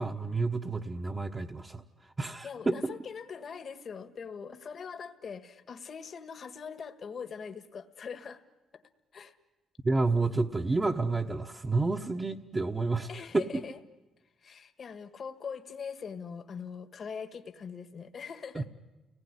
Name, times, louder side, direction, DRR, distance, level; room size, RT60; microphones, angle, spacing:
voice 1, 0.0-1.8 2.2-2.9 9.8-13.6 18.5-18.6, right 3 dB, 25° right, 0 dB, 1.2 m, -30 dB
voice 2, 2.4-8.4 8.7-8.8 9.1-9.4 13.1-13.8 14.4-18.7, left 6 dB, 50° left, 10 dB, 1.6 m, -42 dB
30.0 x 19.0 x 9.9 m, 1.2 s
cardioid pair, 90°, 0 cm